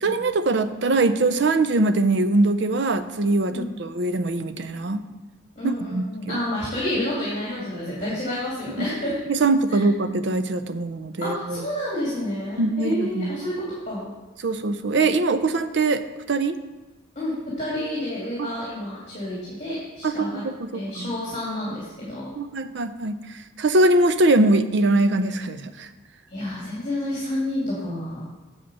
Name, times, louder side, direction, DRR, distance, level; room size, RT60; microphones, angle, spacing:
voice 1, 0.0-5.0 5.6-6.4 8.8-8.9 9.3-11.6 12.6-13.3 14.4-16.0 16.3-16.6 18.4-18.5 20.0-21.1 22.4-23.2 23.6-25.9, right 2 dB, 55° right, 11 dB, 0.5 m, -22 dB
voice 2, 5.6-9.1 9.7-9.8 11.2-14.1 17.2-20.4 20.7-22.3 26.3-28.2, left 1 dB, 30° left, -7 dB, 2.6 m, -29 dB
7.7 x 7.3 x 5.5 m, 1.1 s
head